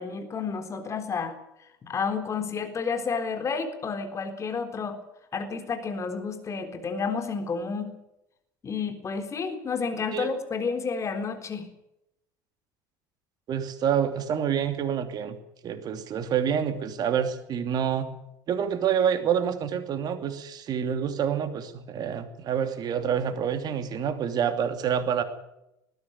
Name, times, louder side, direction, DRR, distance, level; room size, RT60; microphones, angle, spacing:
voice 1, 0.0-1.3 1.8-5.0 5.3-7.9 8.6-11.7, left 5 dB, 30° left, 7 dB, 3.9 m, -30 dB
voice 2, 13.5-15.4 15.6-18.1 18.5-25.2, right 8 dB, 40° right, 9 dB, 2.8 m, -27 dB
20.0 x 14.5 x 9.5 m, 0.85 s
figure-of-eight pair, 65°, 10 cm